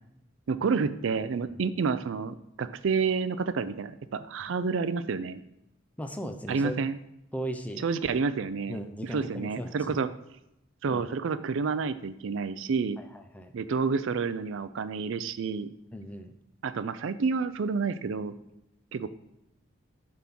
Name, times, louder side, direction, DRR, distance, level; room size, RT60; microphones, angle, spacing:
voice 1, 0.5-5.4 6.5-7.0 7.8-8.8 9.1-10.1 10.8-13.0 13.5-15.7 16.6-18.3 18.9-19.1, right 5 dB, 60° right, 13 dB, 0.4 m, -29 dB
voice 2, 6.0-6.8 7.3-7.9 8.7-10.0 10.9-11.1 13.0-13.5 15.9-16.3, equal, 5° left, 6 dB, 0.5 m, -37 dB
7.7 x 3.6 x 5.9 m, 0.84 s
head